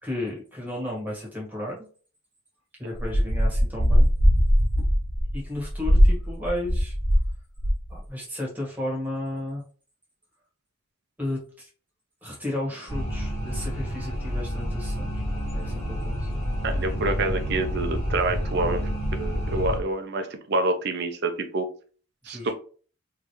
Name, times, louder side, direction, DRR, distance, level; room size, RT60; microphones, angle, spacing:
voice 1, 0.0-1.9 2.8-4.1 5.3-6.9 7.9-9.6 11.2-11.7 12.2-15.1 15.5-16.3 22.2-22.5, left 1 dB, 10° right, -4 dB, 1.6 m, -33 dB
sound 1, 3.0-7.3 7.6-8.0, equal, 30° left, 1.4 m, -20 dB
sound 2, 12.9-19.8, equal, 15° left, 1.8 m, -29 dB
voice 2, 16.6-21.7 22.3-22.5, right 2 dB, 55° right, 7 dB, 0.7 m, -27 dB
3.8 x 3.3 x 3.1 m, 0.40 s
head